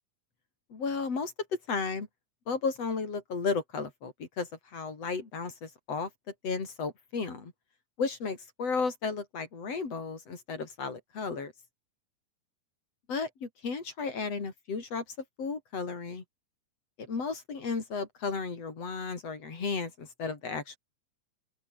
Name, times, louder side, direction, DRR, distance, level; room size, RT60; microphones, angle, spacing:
voice 1, 0.7-2.1 2.5-6.1 6.4-7.5 8.0-11.5 13.1-15.0 15.4-16.2 17.0-20.8, left 4 dB, 50° left, 5.1 m, -34 dB
open air
omnidirectional pair, 3.8 m